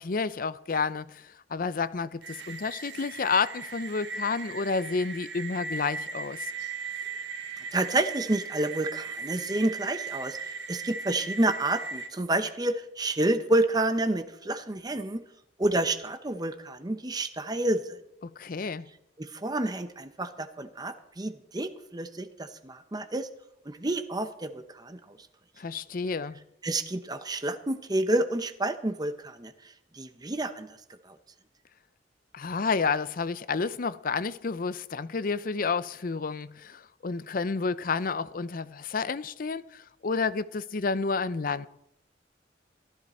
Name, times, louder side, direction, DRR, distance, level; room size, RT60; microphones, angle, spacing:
voice 1, 0.0-6.5 18.2-18.9 25.6-26.4 32.3-41.7, left 4 dB, 50° left, 0.5 m, -30 dB
sound 1, 2.2-12.1, right 5 dB, 65° right, 1.2 m, -38 dB
voice 2, 7.6-15.2 15.6-18.0 19.2-23.3 23.6-25.2 26.6-30.8 31.0-31.2, right 1 dB, 20° right, 0.8 m, -29 dB
15.0 x 13.5 x 4.3 m
head